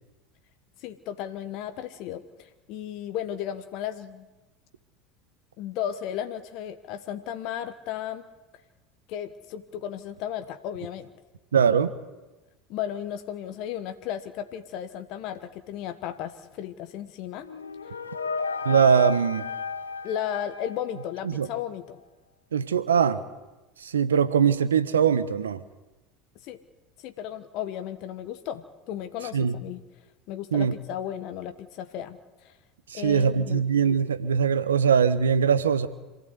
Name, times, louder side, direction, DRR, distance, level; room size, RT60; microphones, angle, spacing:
voice 1, 0.8-4.3 5.6-8.2 9.1-11.1 12.7-17.5 20.0-22.0 26.4-26.6 27.0-29.8 30.3-32.5 32.9-33.6, left 10 dB, 55° left, 8 dB, 1.3 m, -34 dB
voice 2, 11.5-11.9 18.6-19.5 21.2-21.5 22.5-23.2 23.8-25.6 29.3-29.6 30.5-30.7 32.9-35.9, right 7 dB, 85° right, 13 dB, 1.1 m, -22 dB
sound 1, 17.4-21.3, left 5 dB, 90° left, 0.9 m, -33 dB
26.5 x 15.5 x 8.2 m, 1.1 s
hypercardioid pair, 75°, 0 cm